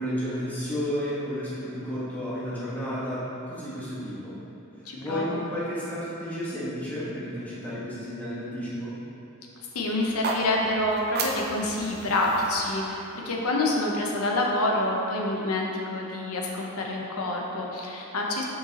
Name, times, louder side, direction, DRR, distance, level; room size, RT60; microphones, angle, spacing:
voice 1, 0.0-4.4 4.9-8.9, equal, 5° left, -10 dB, 1.5 m, -32 dB
voice 2, 4.8-5.4 9.7-18.4, left 1 dB, 75° left, -1 dB, 0.8 m, -27 dB
sound 1, 10.0-14.2, right 3 dB, 45° right, 0.6 m, -35 dB
6.6 x 5.7 x 2.9 m, 2.9 s
head